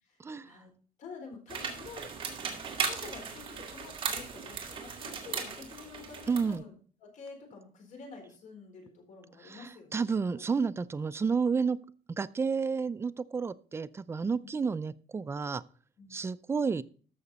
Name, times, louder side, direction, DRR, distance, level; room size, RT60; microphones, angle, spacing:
voice 1, 0.2-0.6 6.3-6.6 9.4-11.8 12.2-15.6 16.1-16.8, right 5 dB, 15° right, 14 dB, 0.4 m, -31 dB
voice 2, 1.0-2.0 2.7-6.7 7.0-10.0 10.3-10.4 14.4-14.5 16.0-16.3, left 4 dB, 55° left, 3 dB, 4.1 m, -48 dB
sound 1, 1.5-6.5, right 6 dB, 35° right, 2.2 m, -37 dB
13.5 x 6.0 x 4.1 m, 0.42 s
cardioid pair, 160°, 15 cm